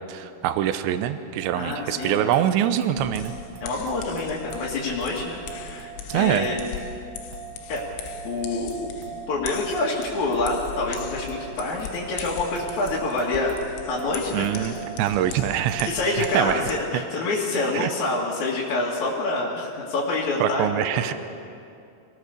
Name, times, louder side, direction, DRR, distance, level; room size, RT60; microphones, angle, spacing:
voice 1, 0.1-3.3 6.1-6.5 14.3-16.7 17.7-17.9 20.4-21.1, right 11 dB, 80° right, 10 dB, 2.7 m, -24 dB
sound 1, 1.4-16.4, right 10 dB, 65° right, 4.0 m, -41 dB
voice 2, 1.5-2.3 3.6-6.6 7.7-8.9 9.3-13.6 13.9-14.7 15.5-21.1, left 2 dB, 50° left, -5 dB, 2.7 m, -27 dB
sound 2, 3.0-16.8, left 8 dB, 80° left, 3.6 m, -40 dB
25.5 x 18.5 x 6.7 m, 2.5 s
omnidirectional pair, 5.8 m